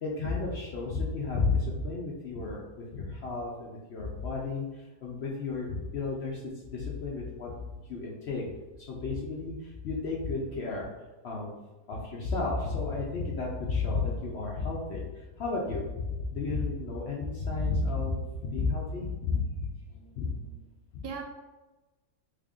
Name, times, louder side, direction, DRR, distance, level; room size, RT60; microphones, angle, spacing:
voice 1, 0.0-2.6 2.9-6.4 6.7-7.5 7.9-8.4 8.9-10.9 11.2-11.5 11.9-18.2 18.5-19.7 20.2-20.3, left 3 dB, 65° left, -3 dB, 0.6 m, -32 dB
voice 2, 19.1-19.4 19.8-20.7 21.0-21.2, right 6 dB, 85° right, 2 dB, 1.2 m, -45 dB
3.3 x 2.5 x 3.5 m, 1.1 s
omnidirectional pair, 1.6 m